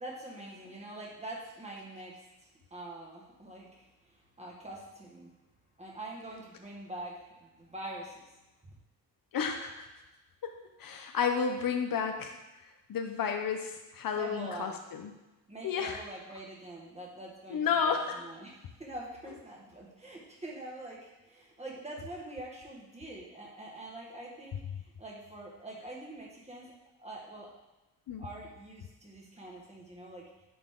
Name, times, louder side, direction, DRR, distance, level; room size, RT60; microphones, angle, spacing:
voice 1, 0.0-2.1 2.4-5.3 5.8-8.3 12.0-12.1 14.2-14.8 15.5-26.7 27.0-27.5 28.2-30.2, right 2 dB, 15° right, -3 dB, 1.8 m, -45 dB
voice 2, 9.3-9.9 10.4-10.5 10.8-12.4 12.9-15.1 15.6-16.0 17.5-18.2 28.1-28.3, left 6 dB, 60° left, 5 dB, 0.7 m, -31 dB
10.0 x 4.2 x 3.8 m, 1.0 s
wide cardioid pair, 130°, 38 cm